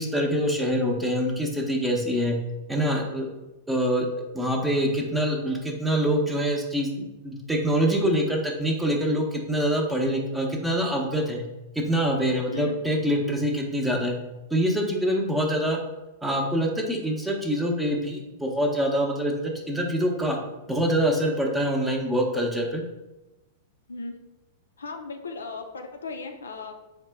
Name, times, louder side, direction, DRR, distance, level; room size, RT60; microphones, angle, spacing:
voice 1, 0.0-2.4 2.7-3.3 3.7-4.1 4.3-11.4 11.8-14.2 14.5-15.8 16.2-20.4 20.7-22.8, equal, 5° right, 1 dB, 0.6 m, -25 dB
voice 2, 12.5-12.8 23.9-24.2 24.8-26.7, left 4 dB, 85° left, 4 dB, 0.4 m, -36 dB
4.1 x 2.1 x 3.4 m, 1.0 s
hypercardioid pair, 105°, 0 cm